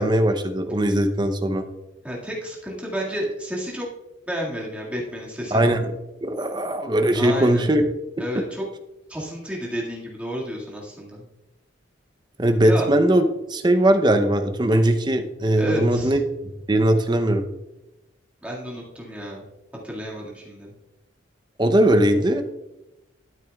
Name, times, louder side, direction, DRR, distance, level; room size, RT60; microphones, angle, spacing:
voice 1, 0.0-1.6 5.5-5.9 6.2-7.8 12.4-16.2 16.7-17.4 21.6-22.4, right 1 dB, 20° right, 7 dB, 0.6 m, -20 dB
voice 2, 2.0-3.9 4.3-5.8 7.1-7.6 8.2-8.6 9.1-11.2 12.6-12.9 15.6-16.2 18.4-19.5 19.8-20.7, equal, 5° right, -5 dB, 1.9 m, -31 dB
12.5 x 9.1 x 2.3 m, 0.96 s
head